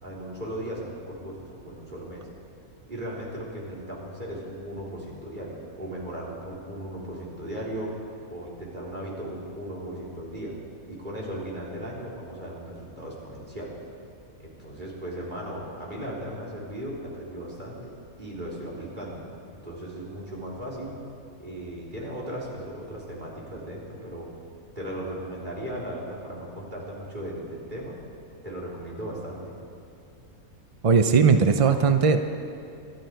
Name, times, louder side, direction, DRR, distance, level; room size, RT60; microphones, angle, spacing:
voice 1, 0.0-2.3 2.9-10.5 10.9-13.7 14.4-17.9 18.2-19.3 19.6-20.9 21.4-24.3 24.8-28.0 28.4-29.5, right 1 dB, 30° right, -4 dB, 3.6 m, -37 dB
voice 2, 30.8-32.2, right 5 dB, 50° right, 7 dB, 0.4 m, -18 dB
26.0 x 12.0 x 4.6 m, 2.6 s
omnidirectional pair, 1.5 m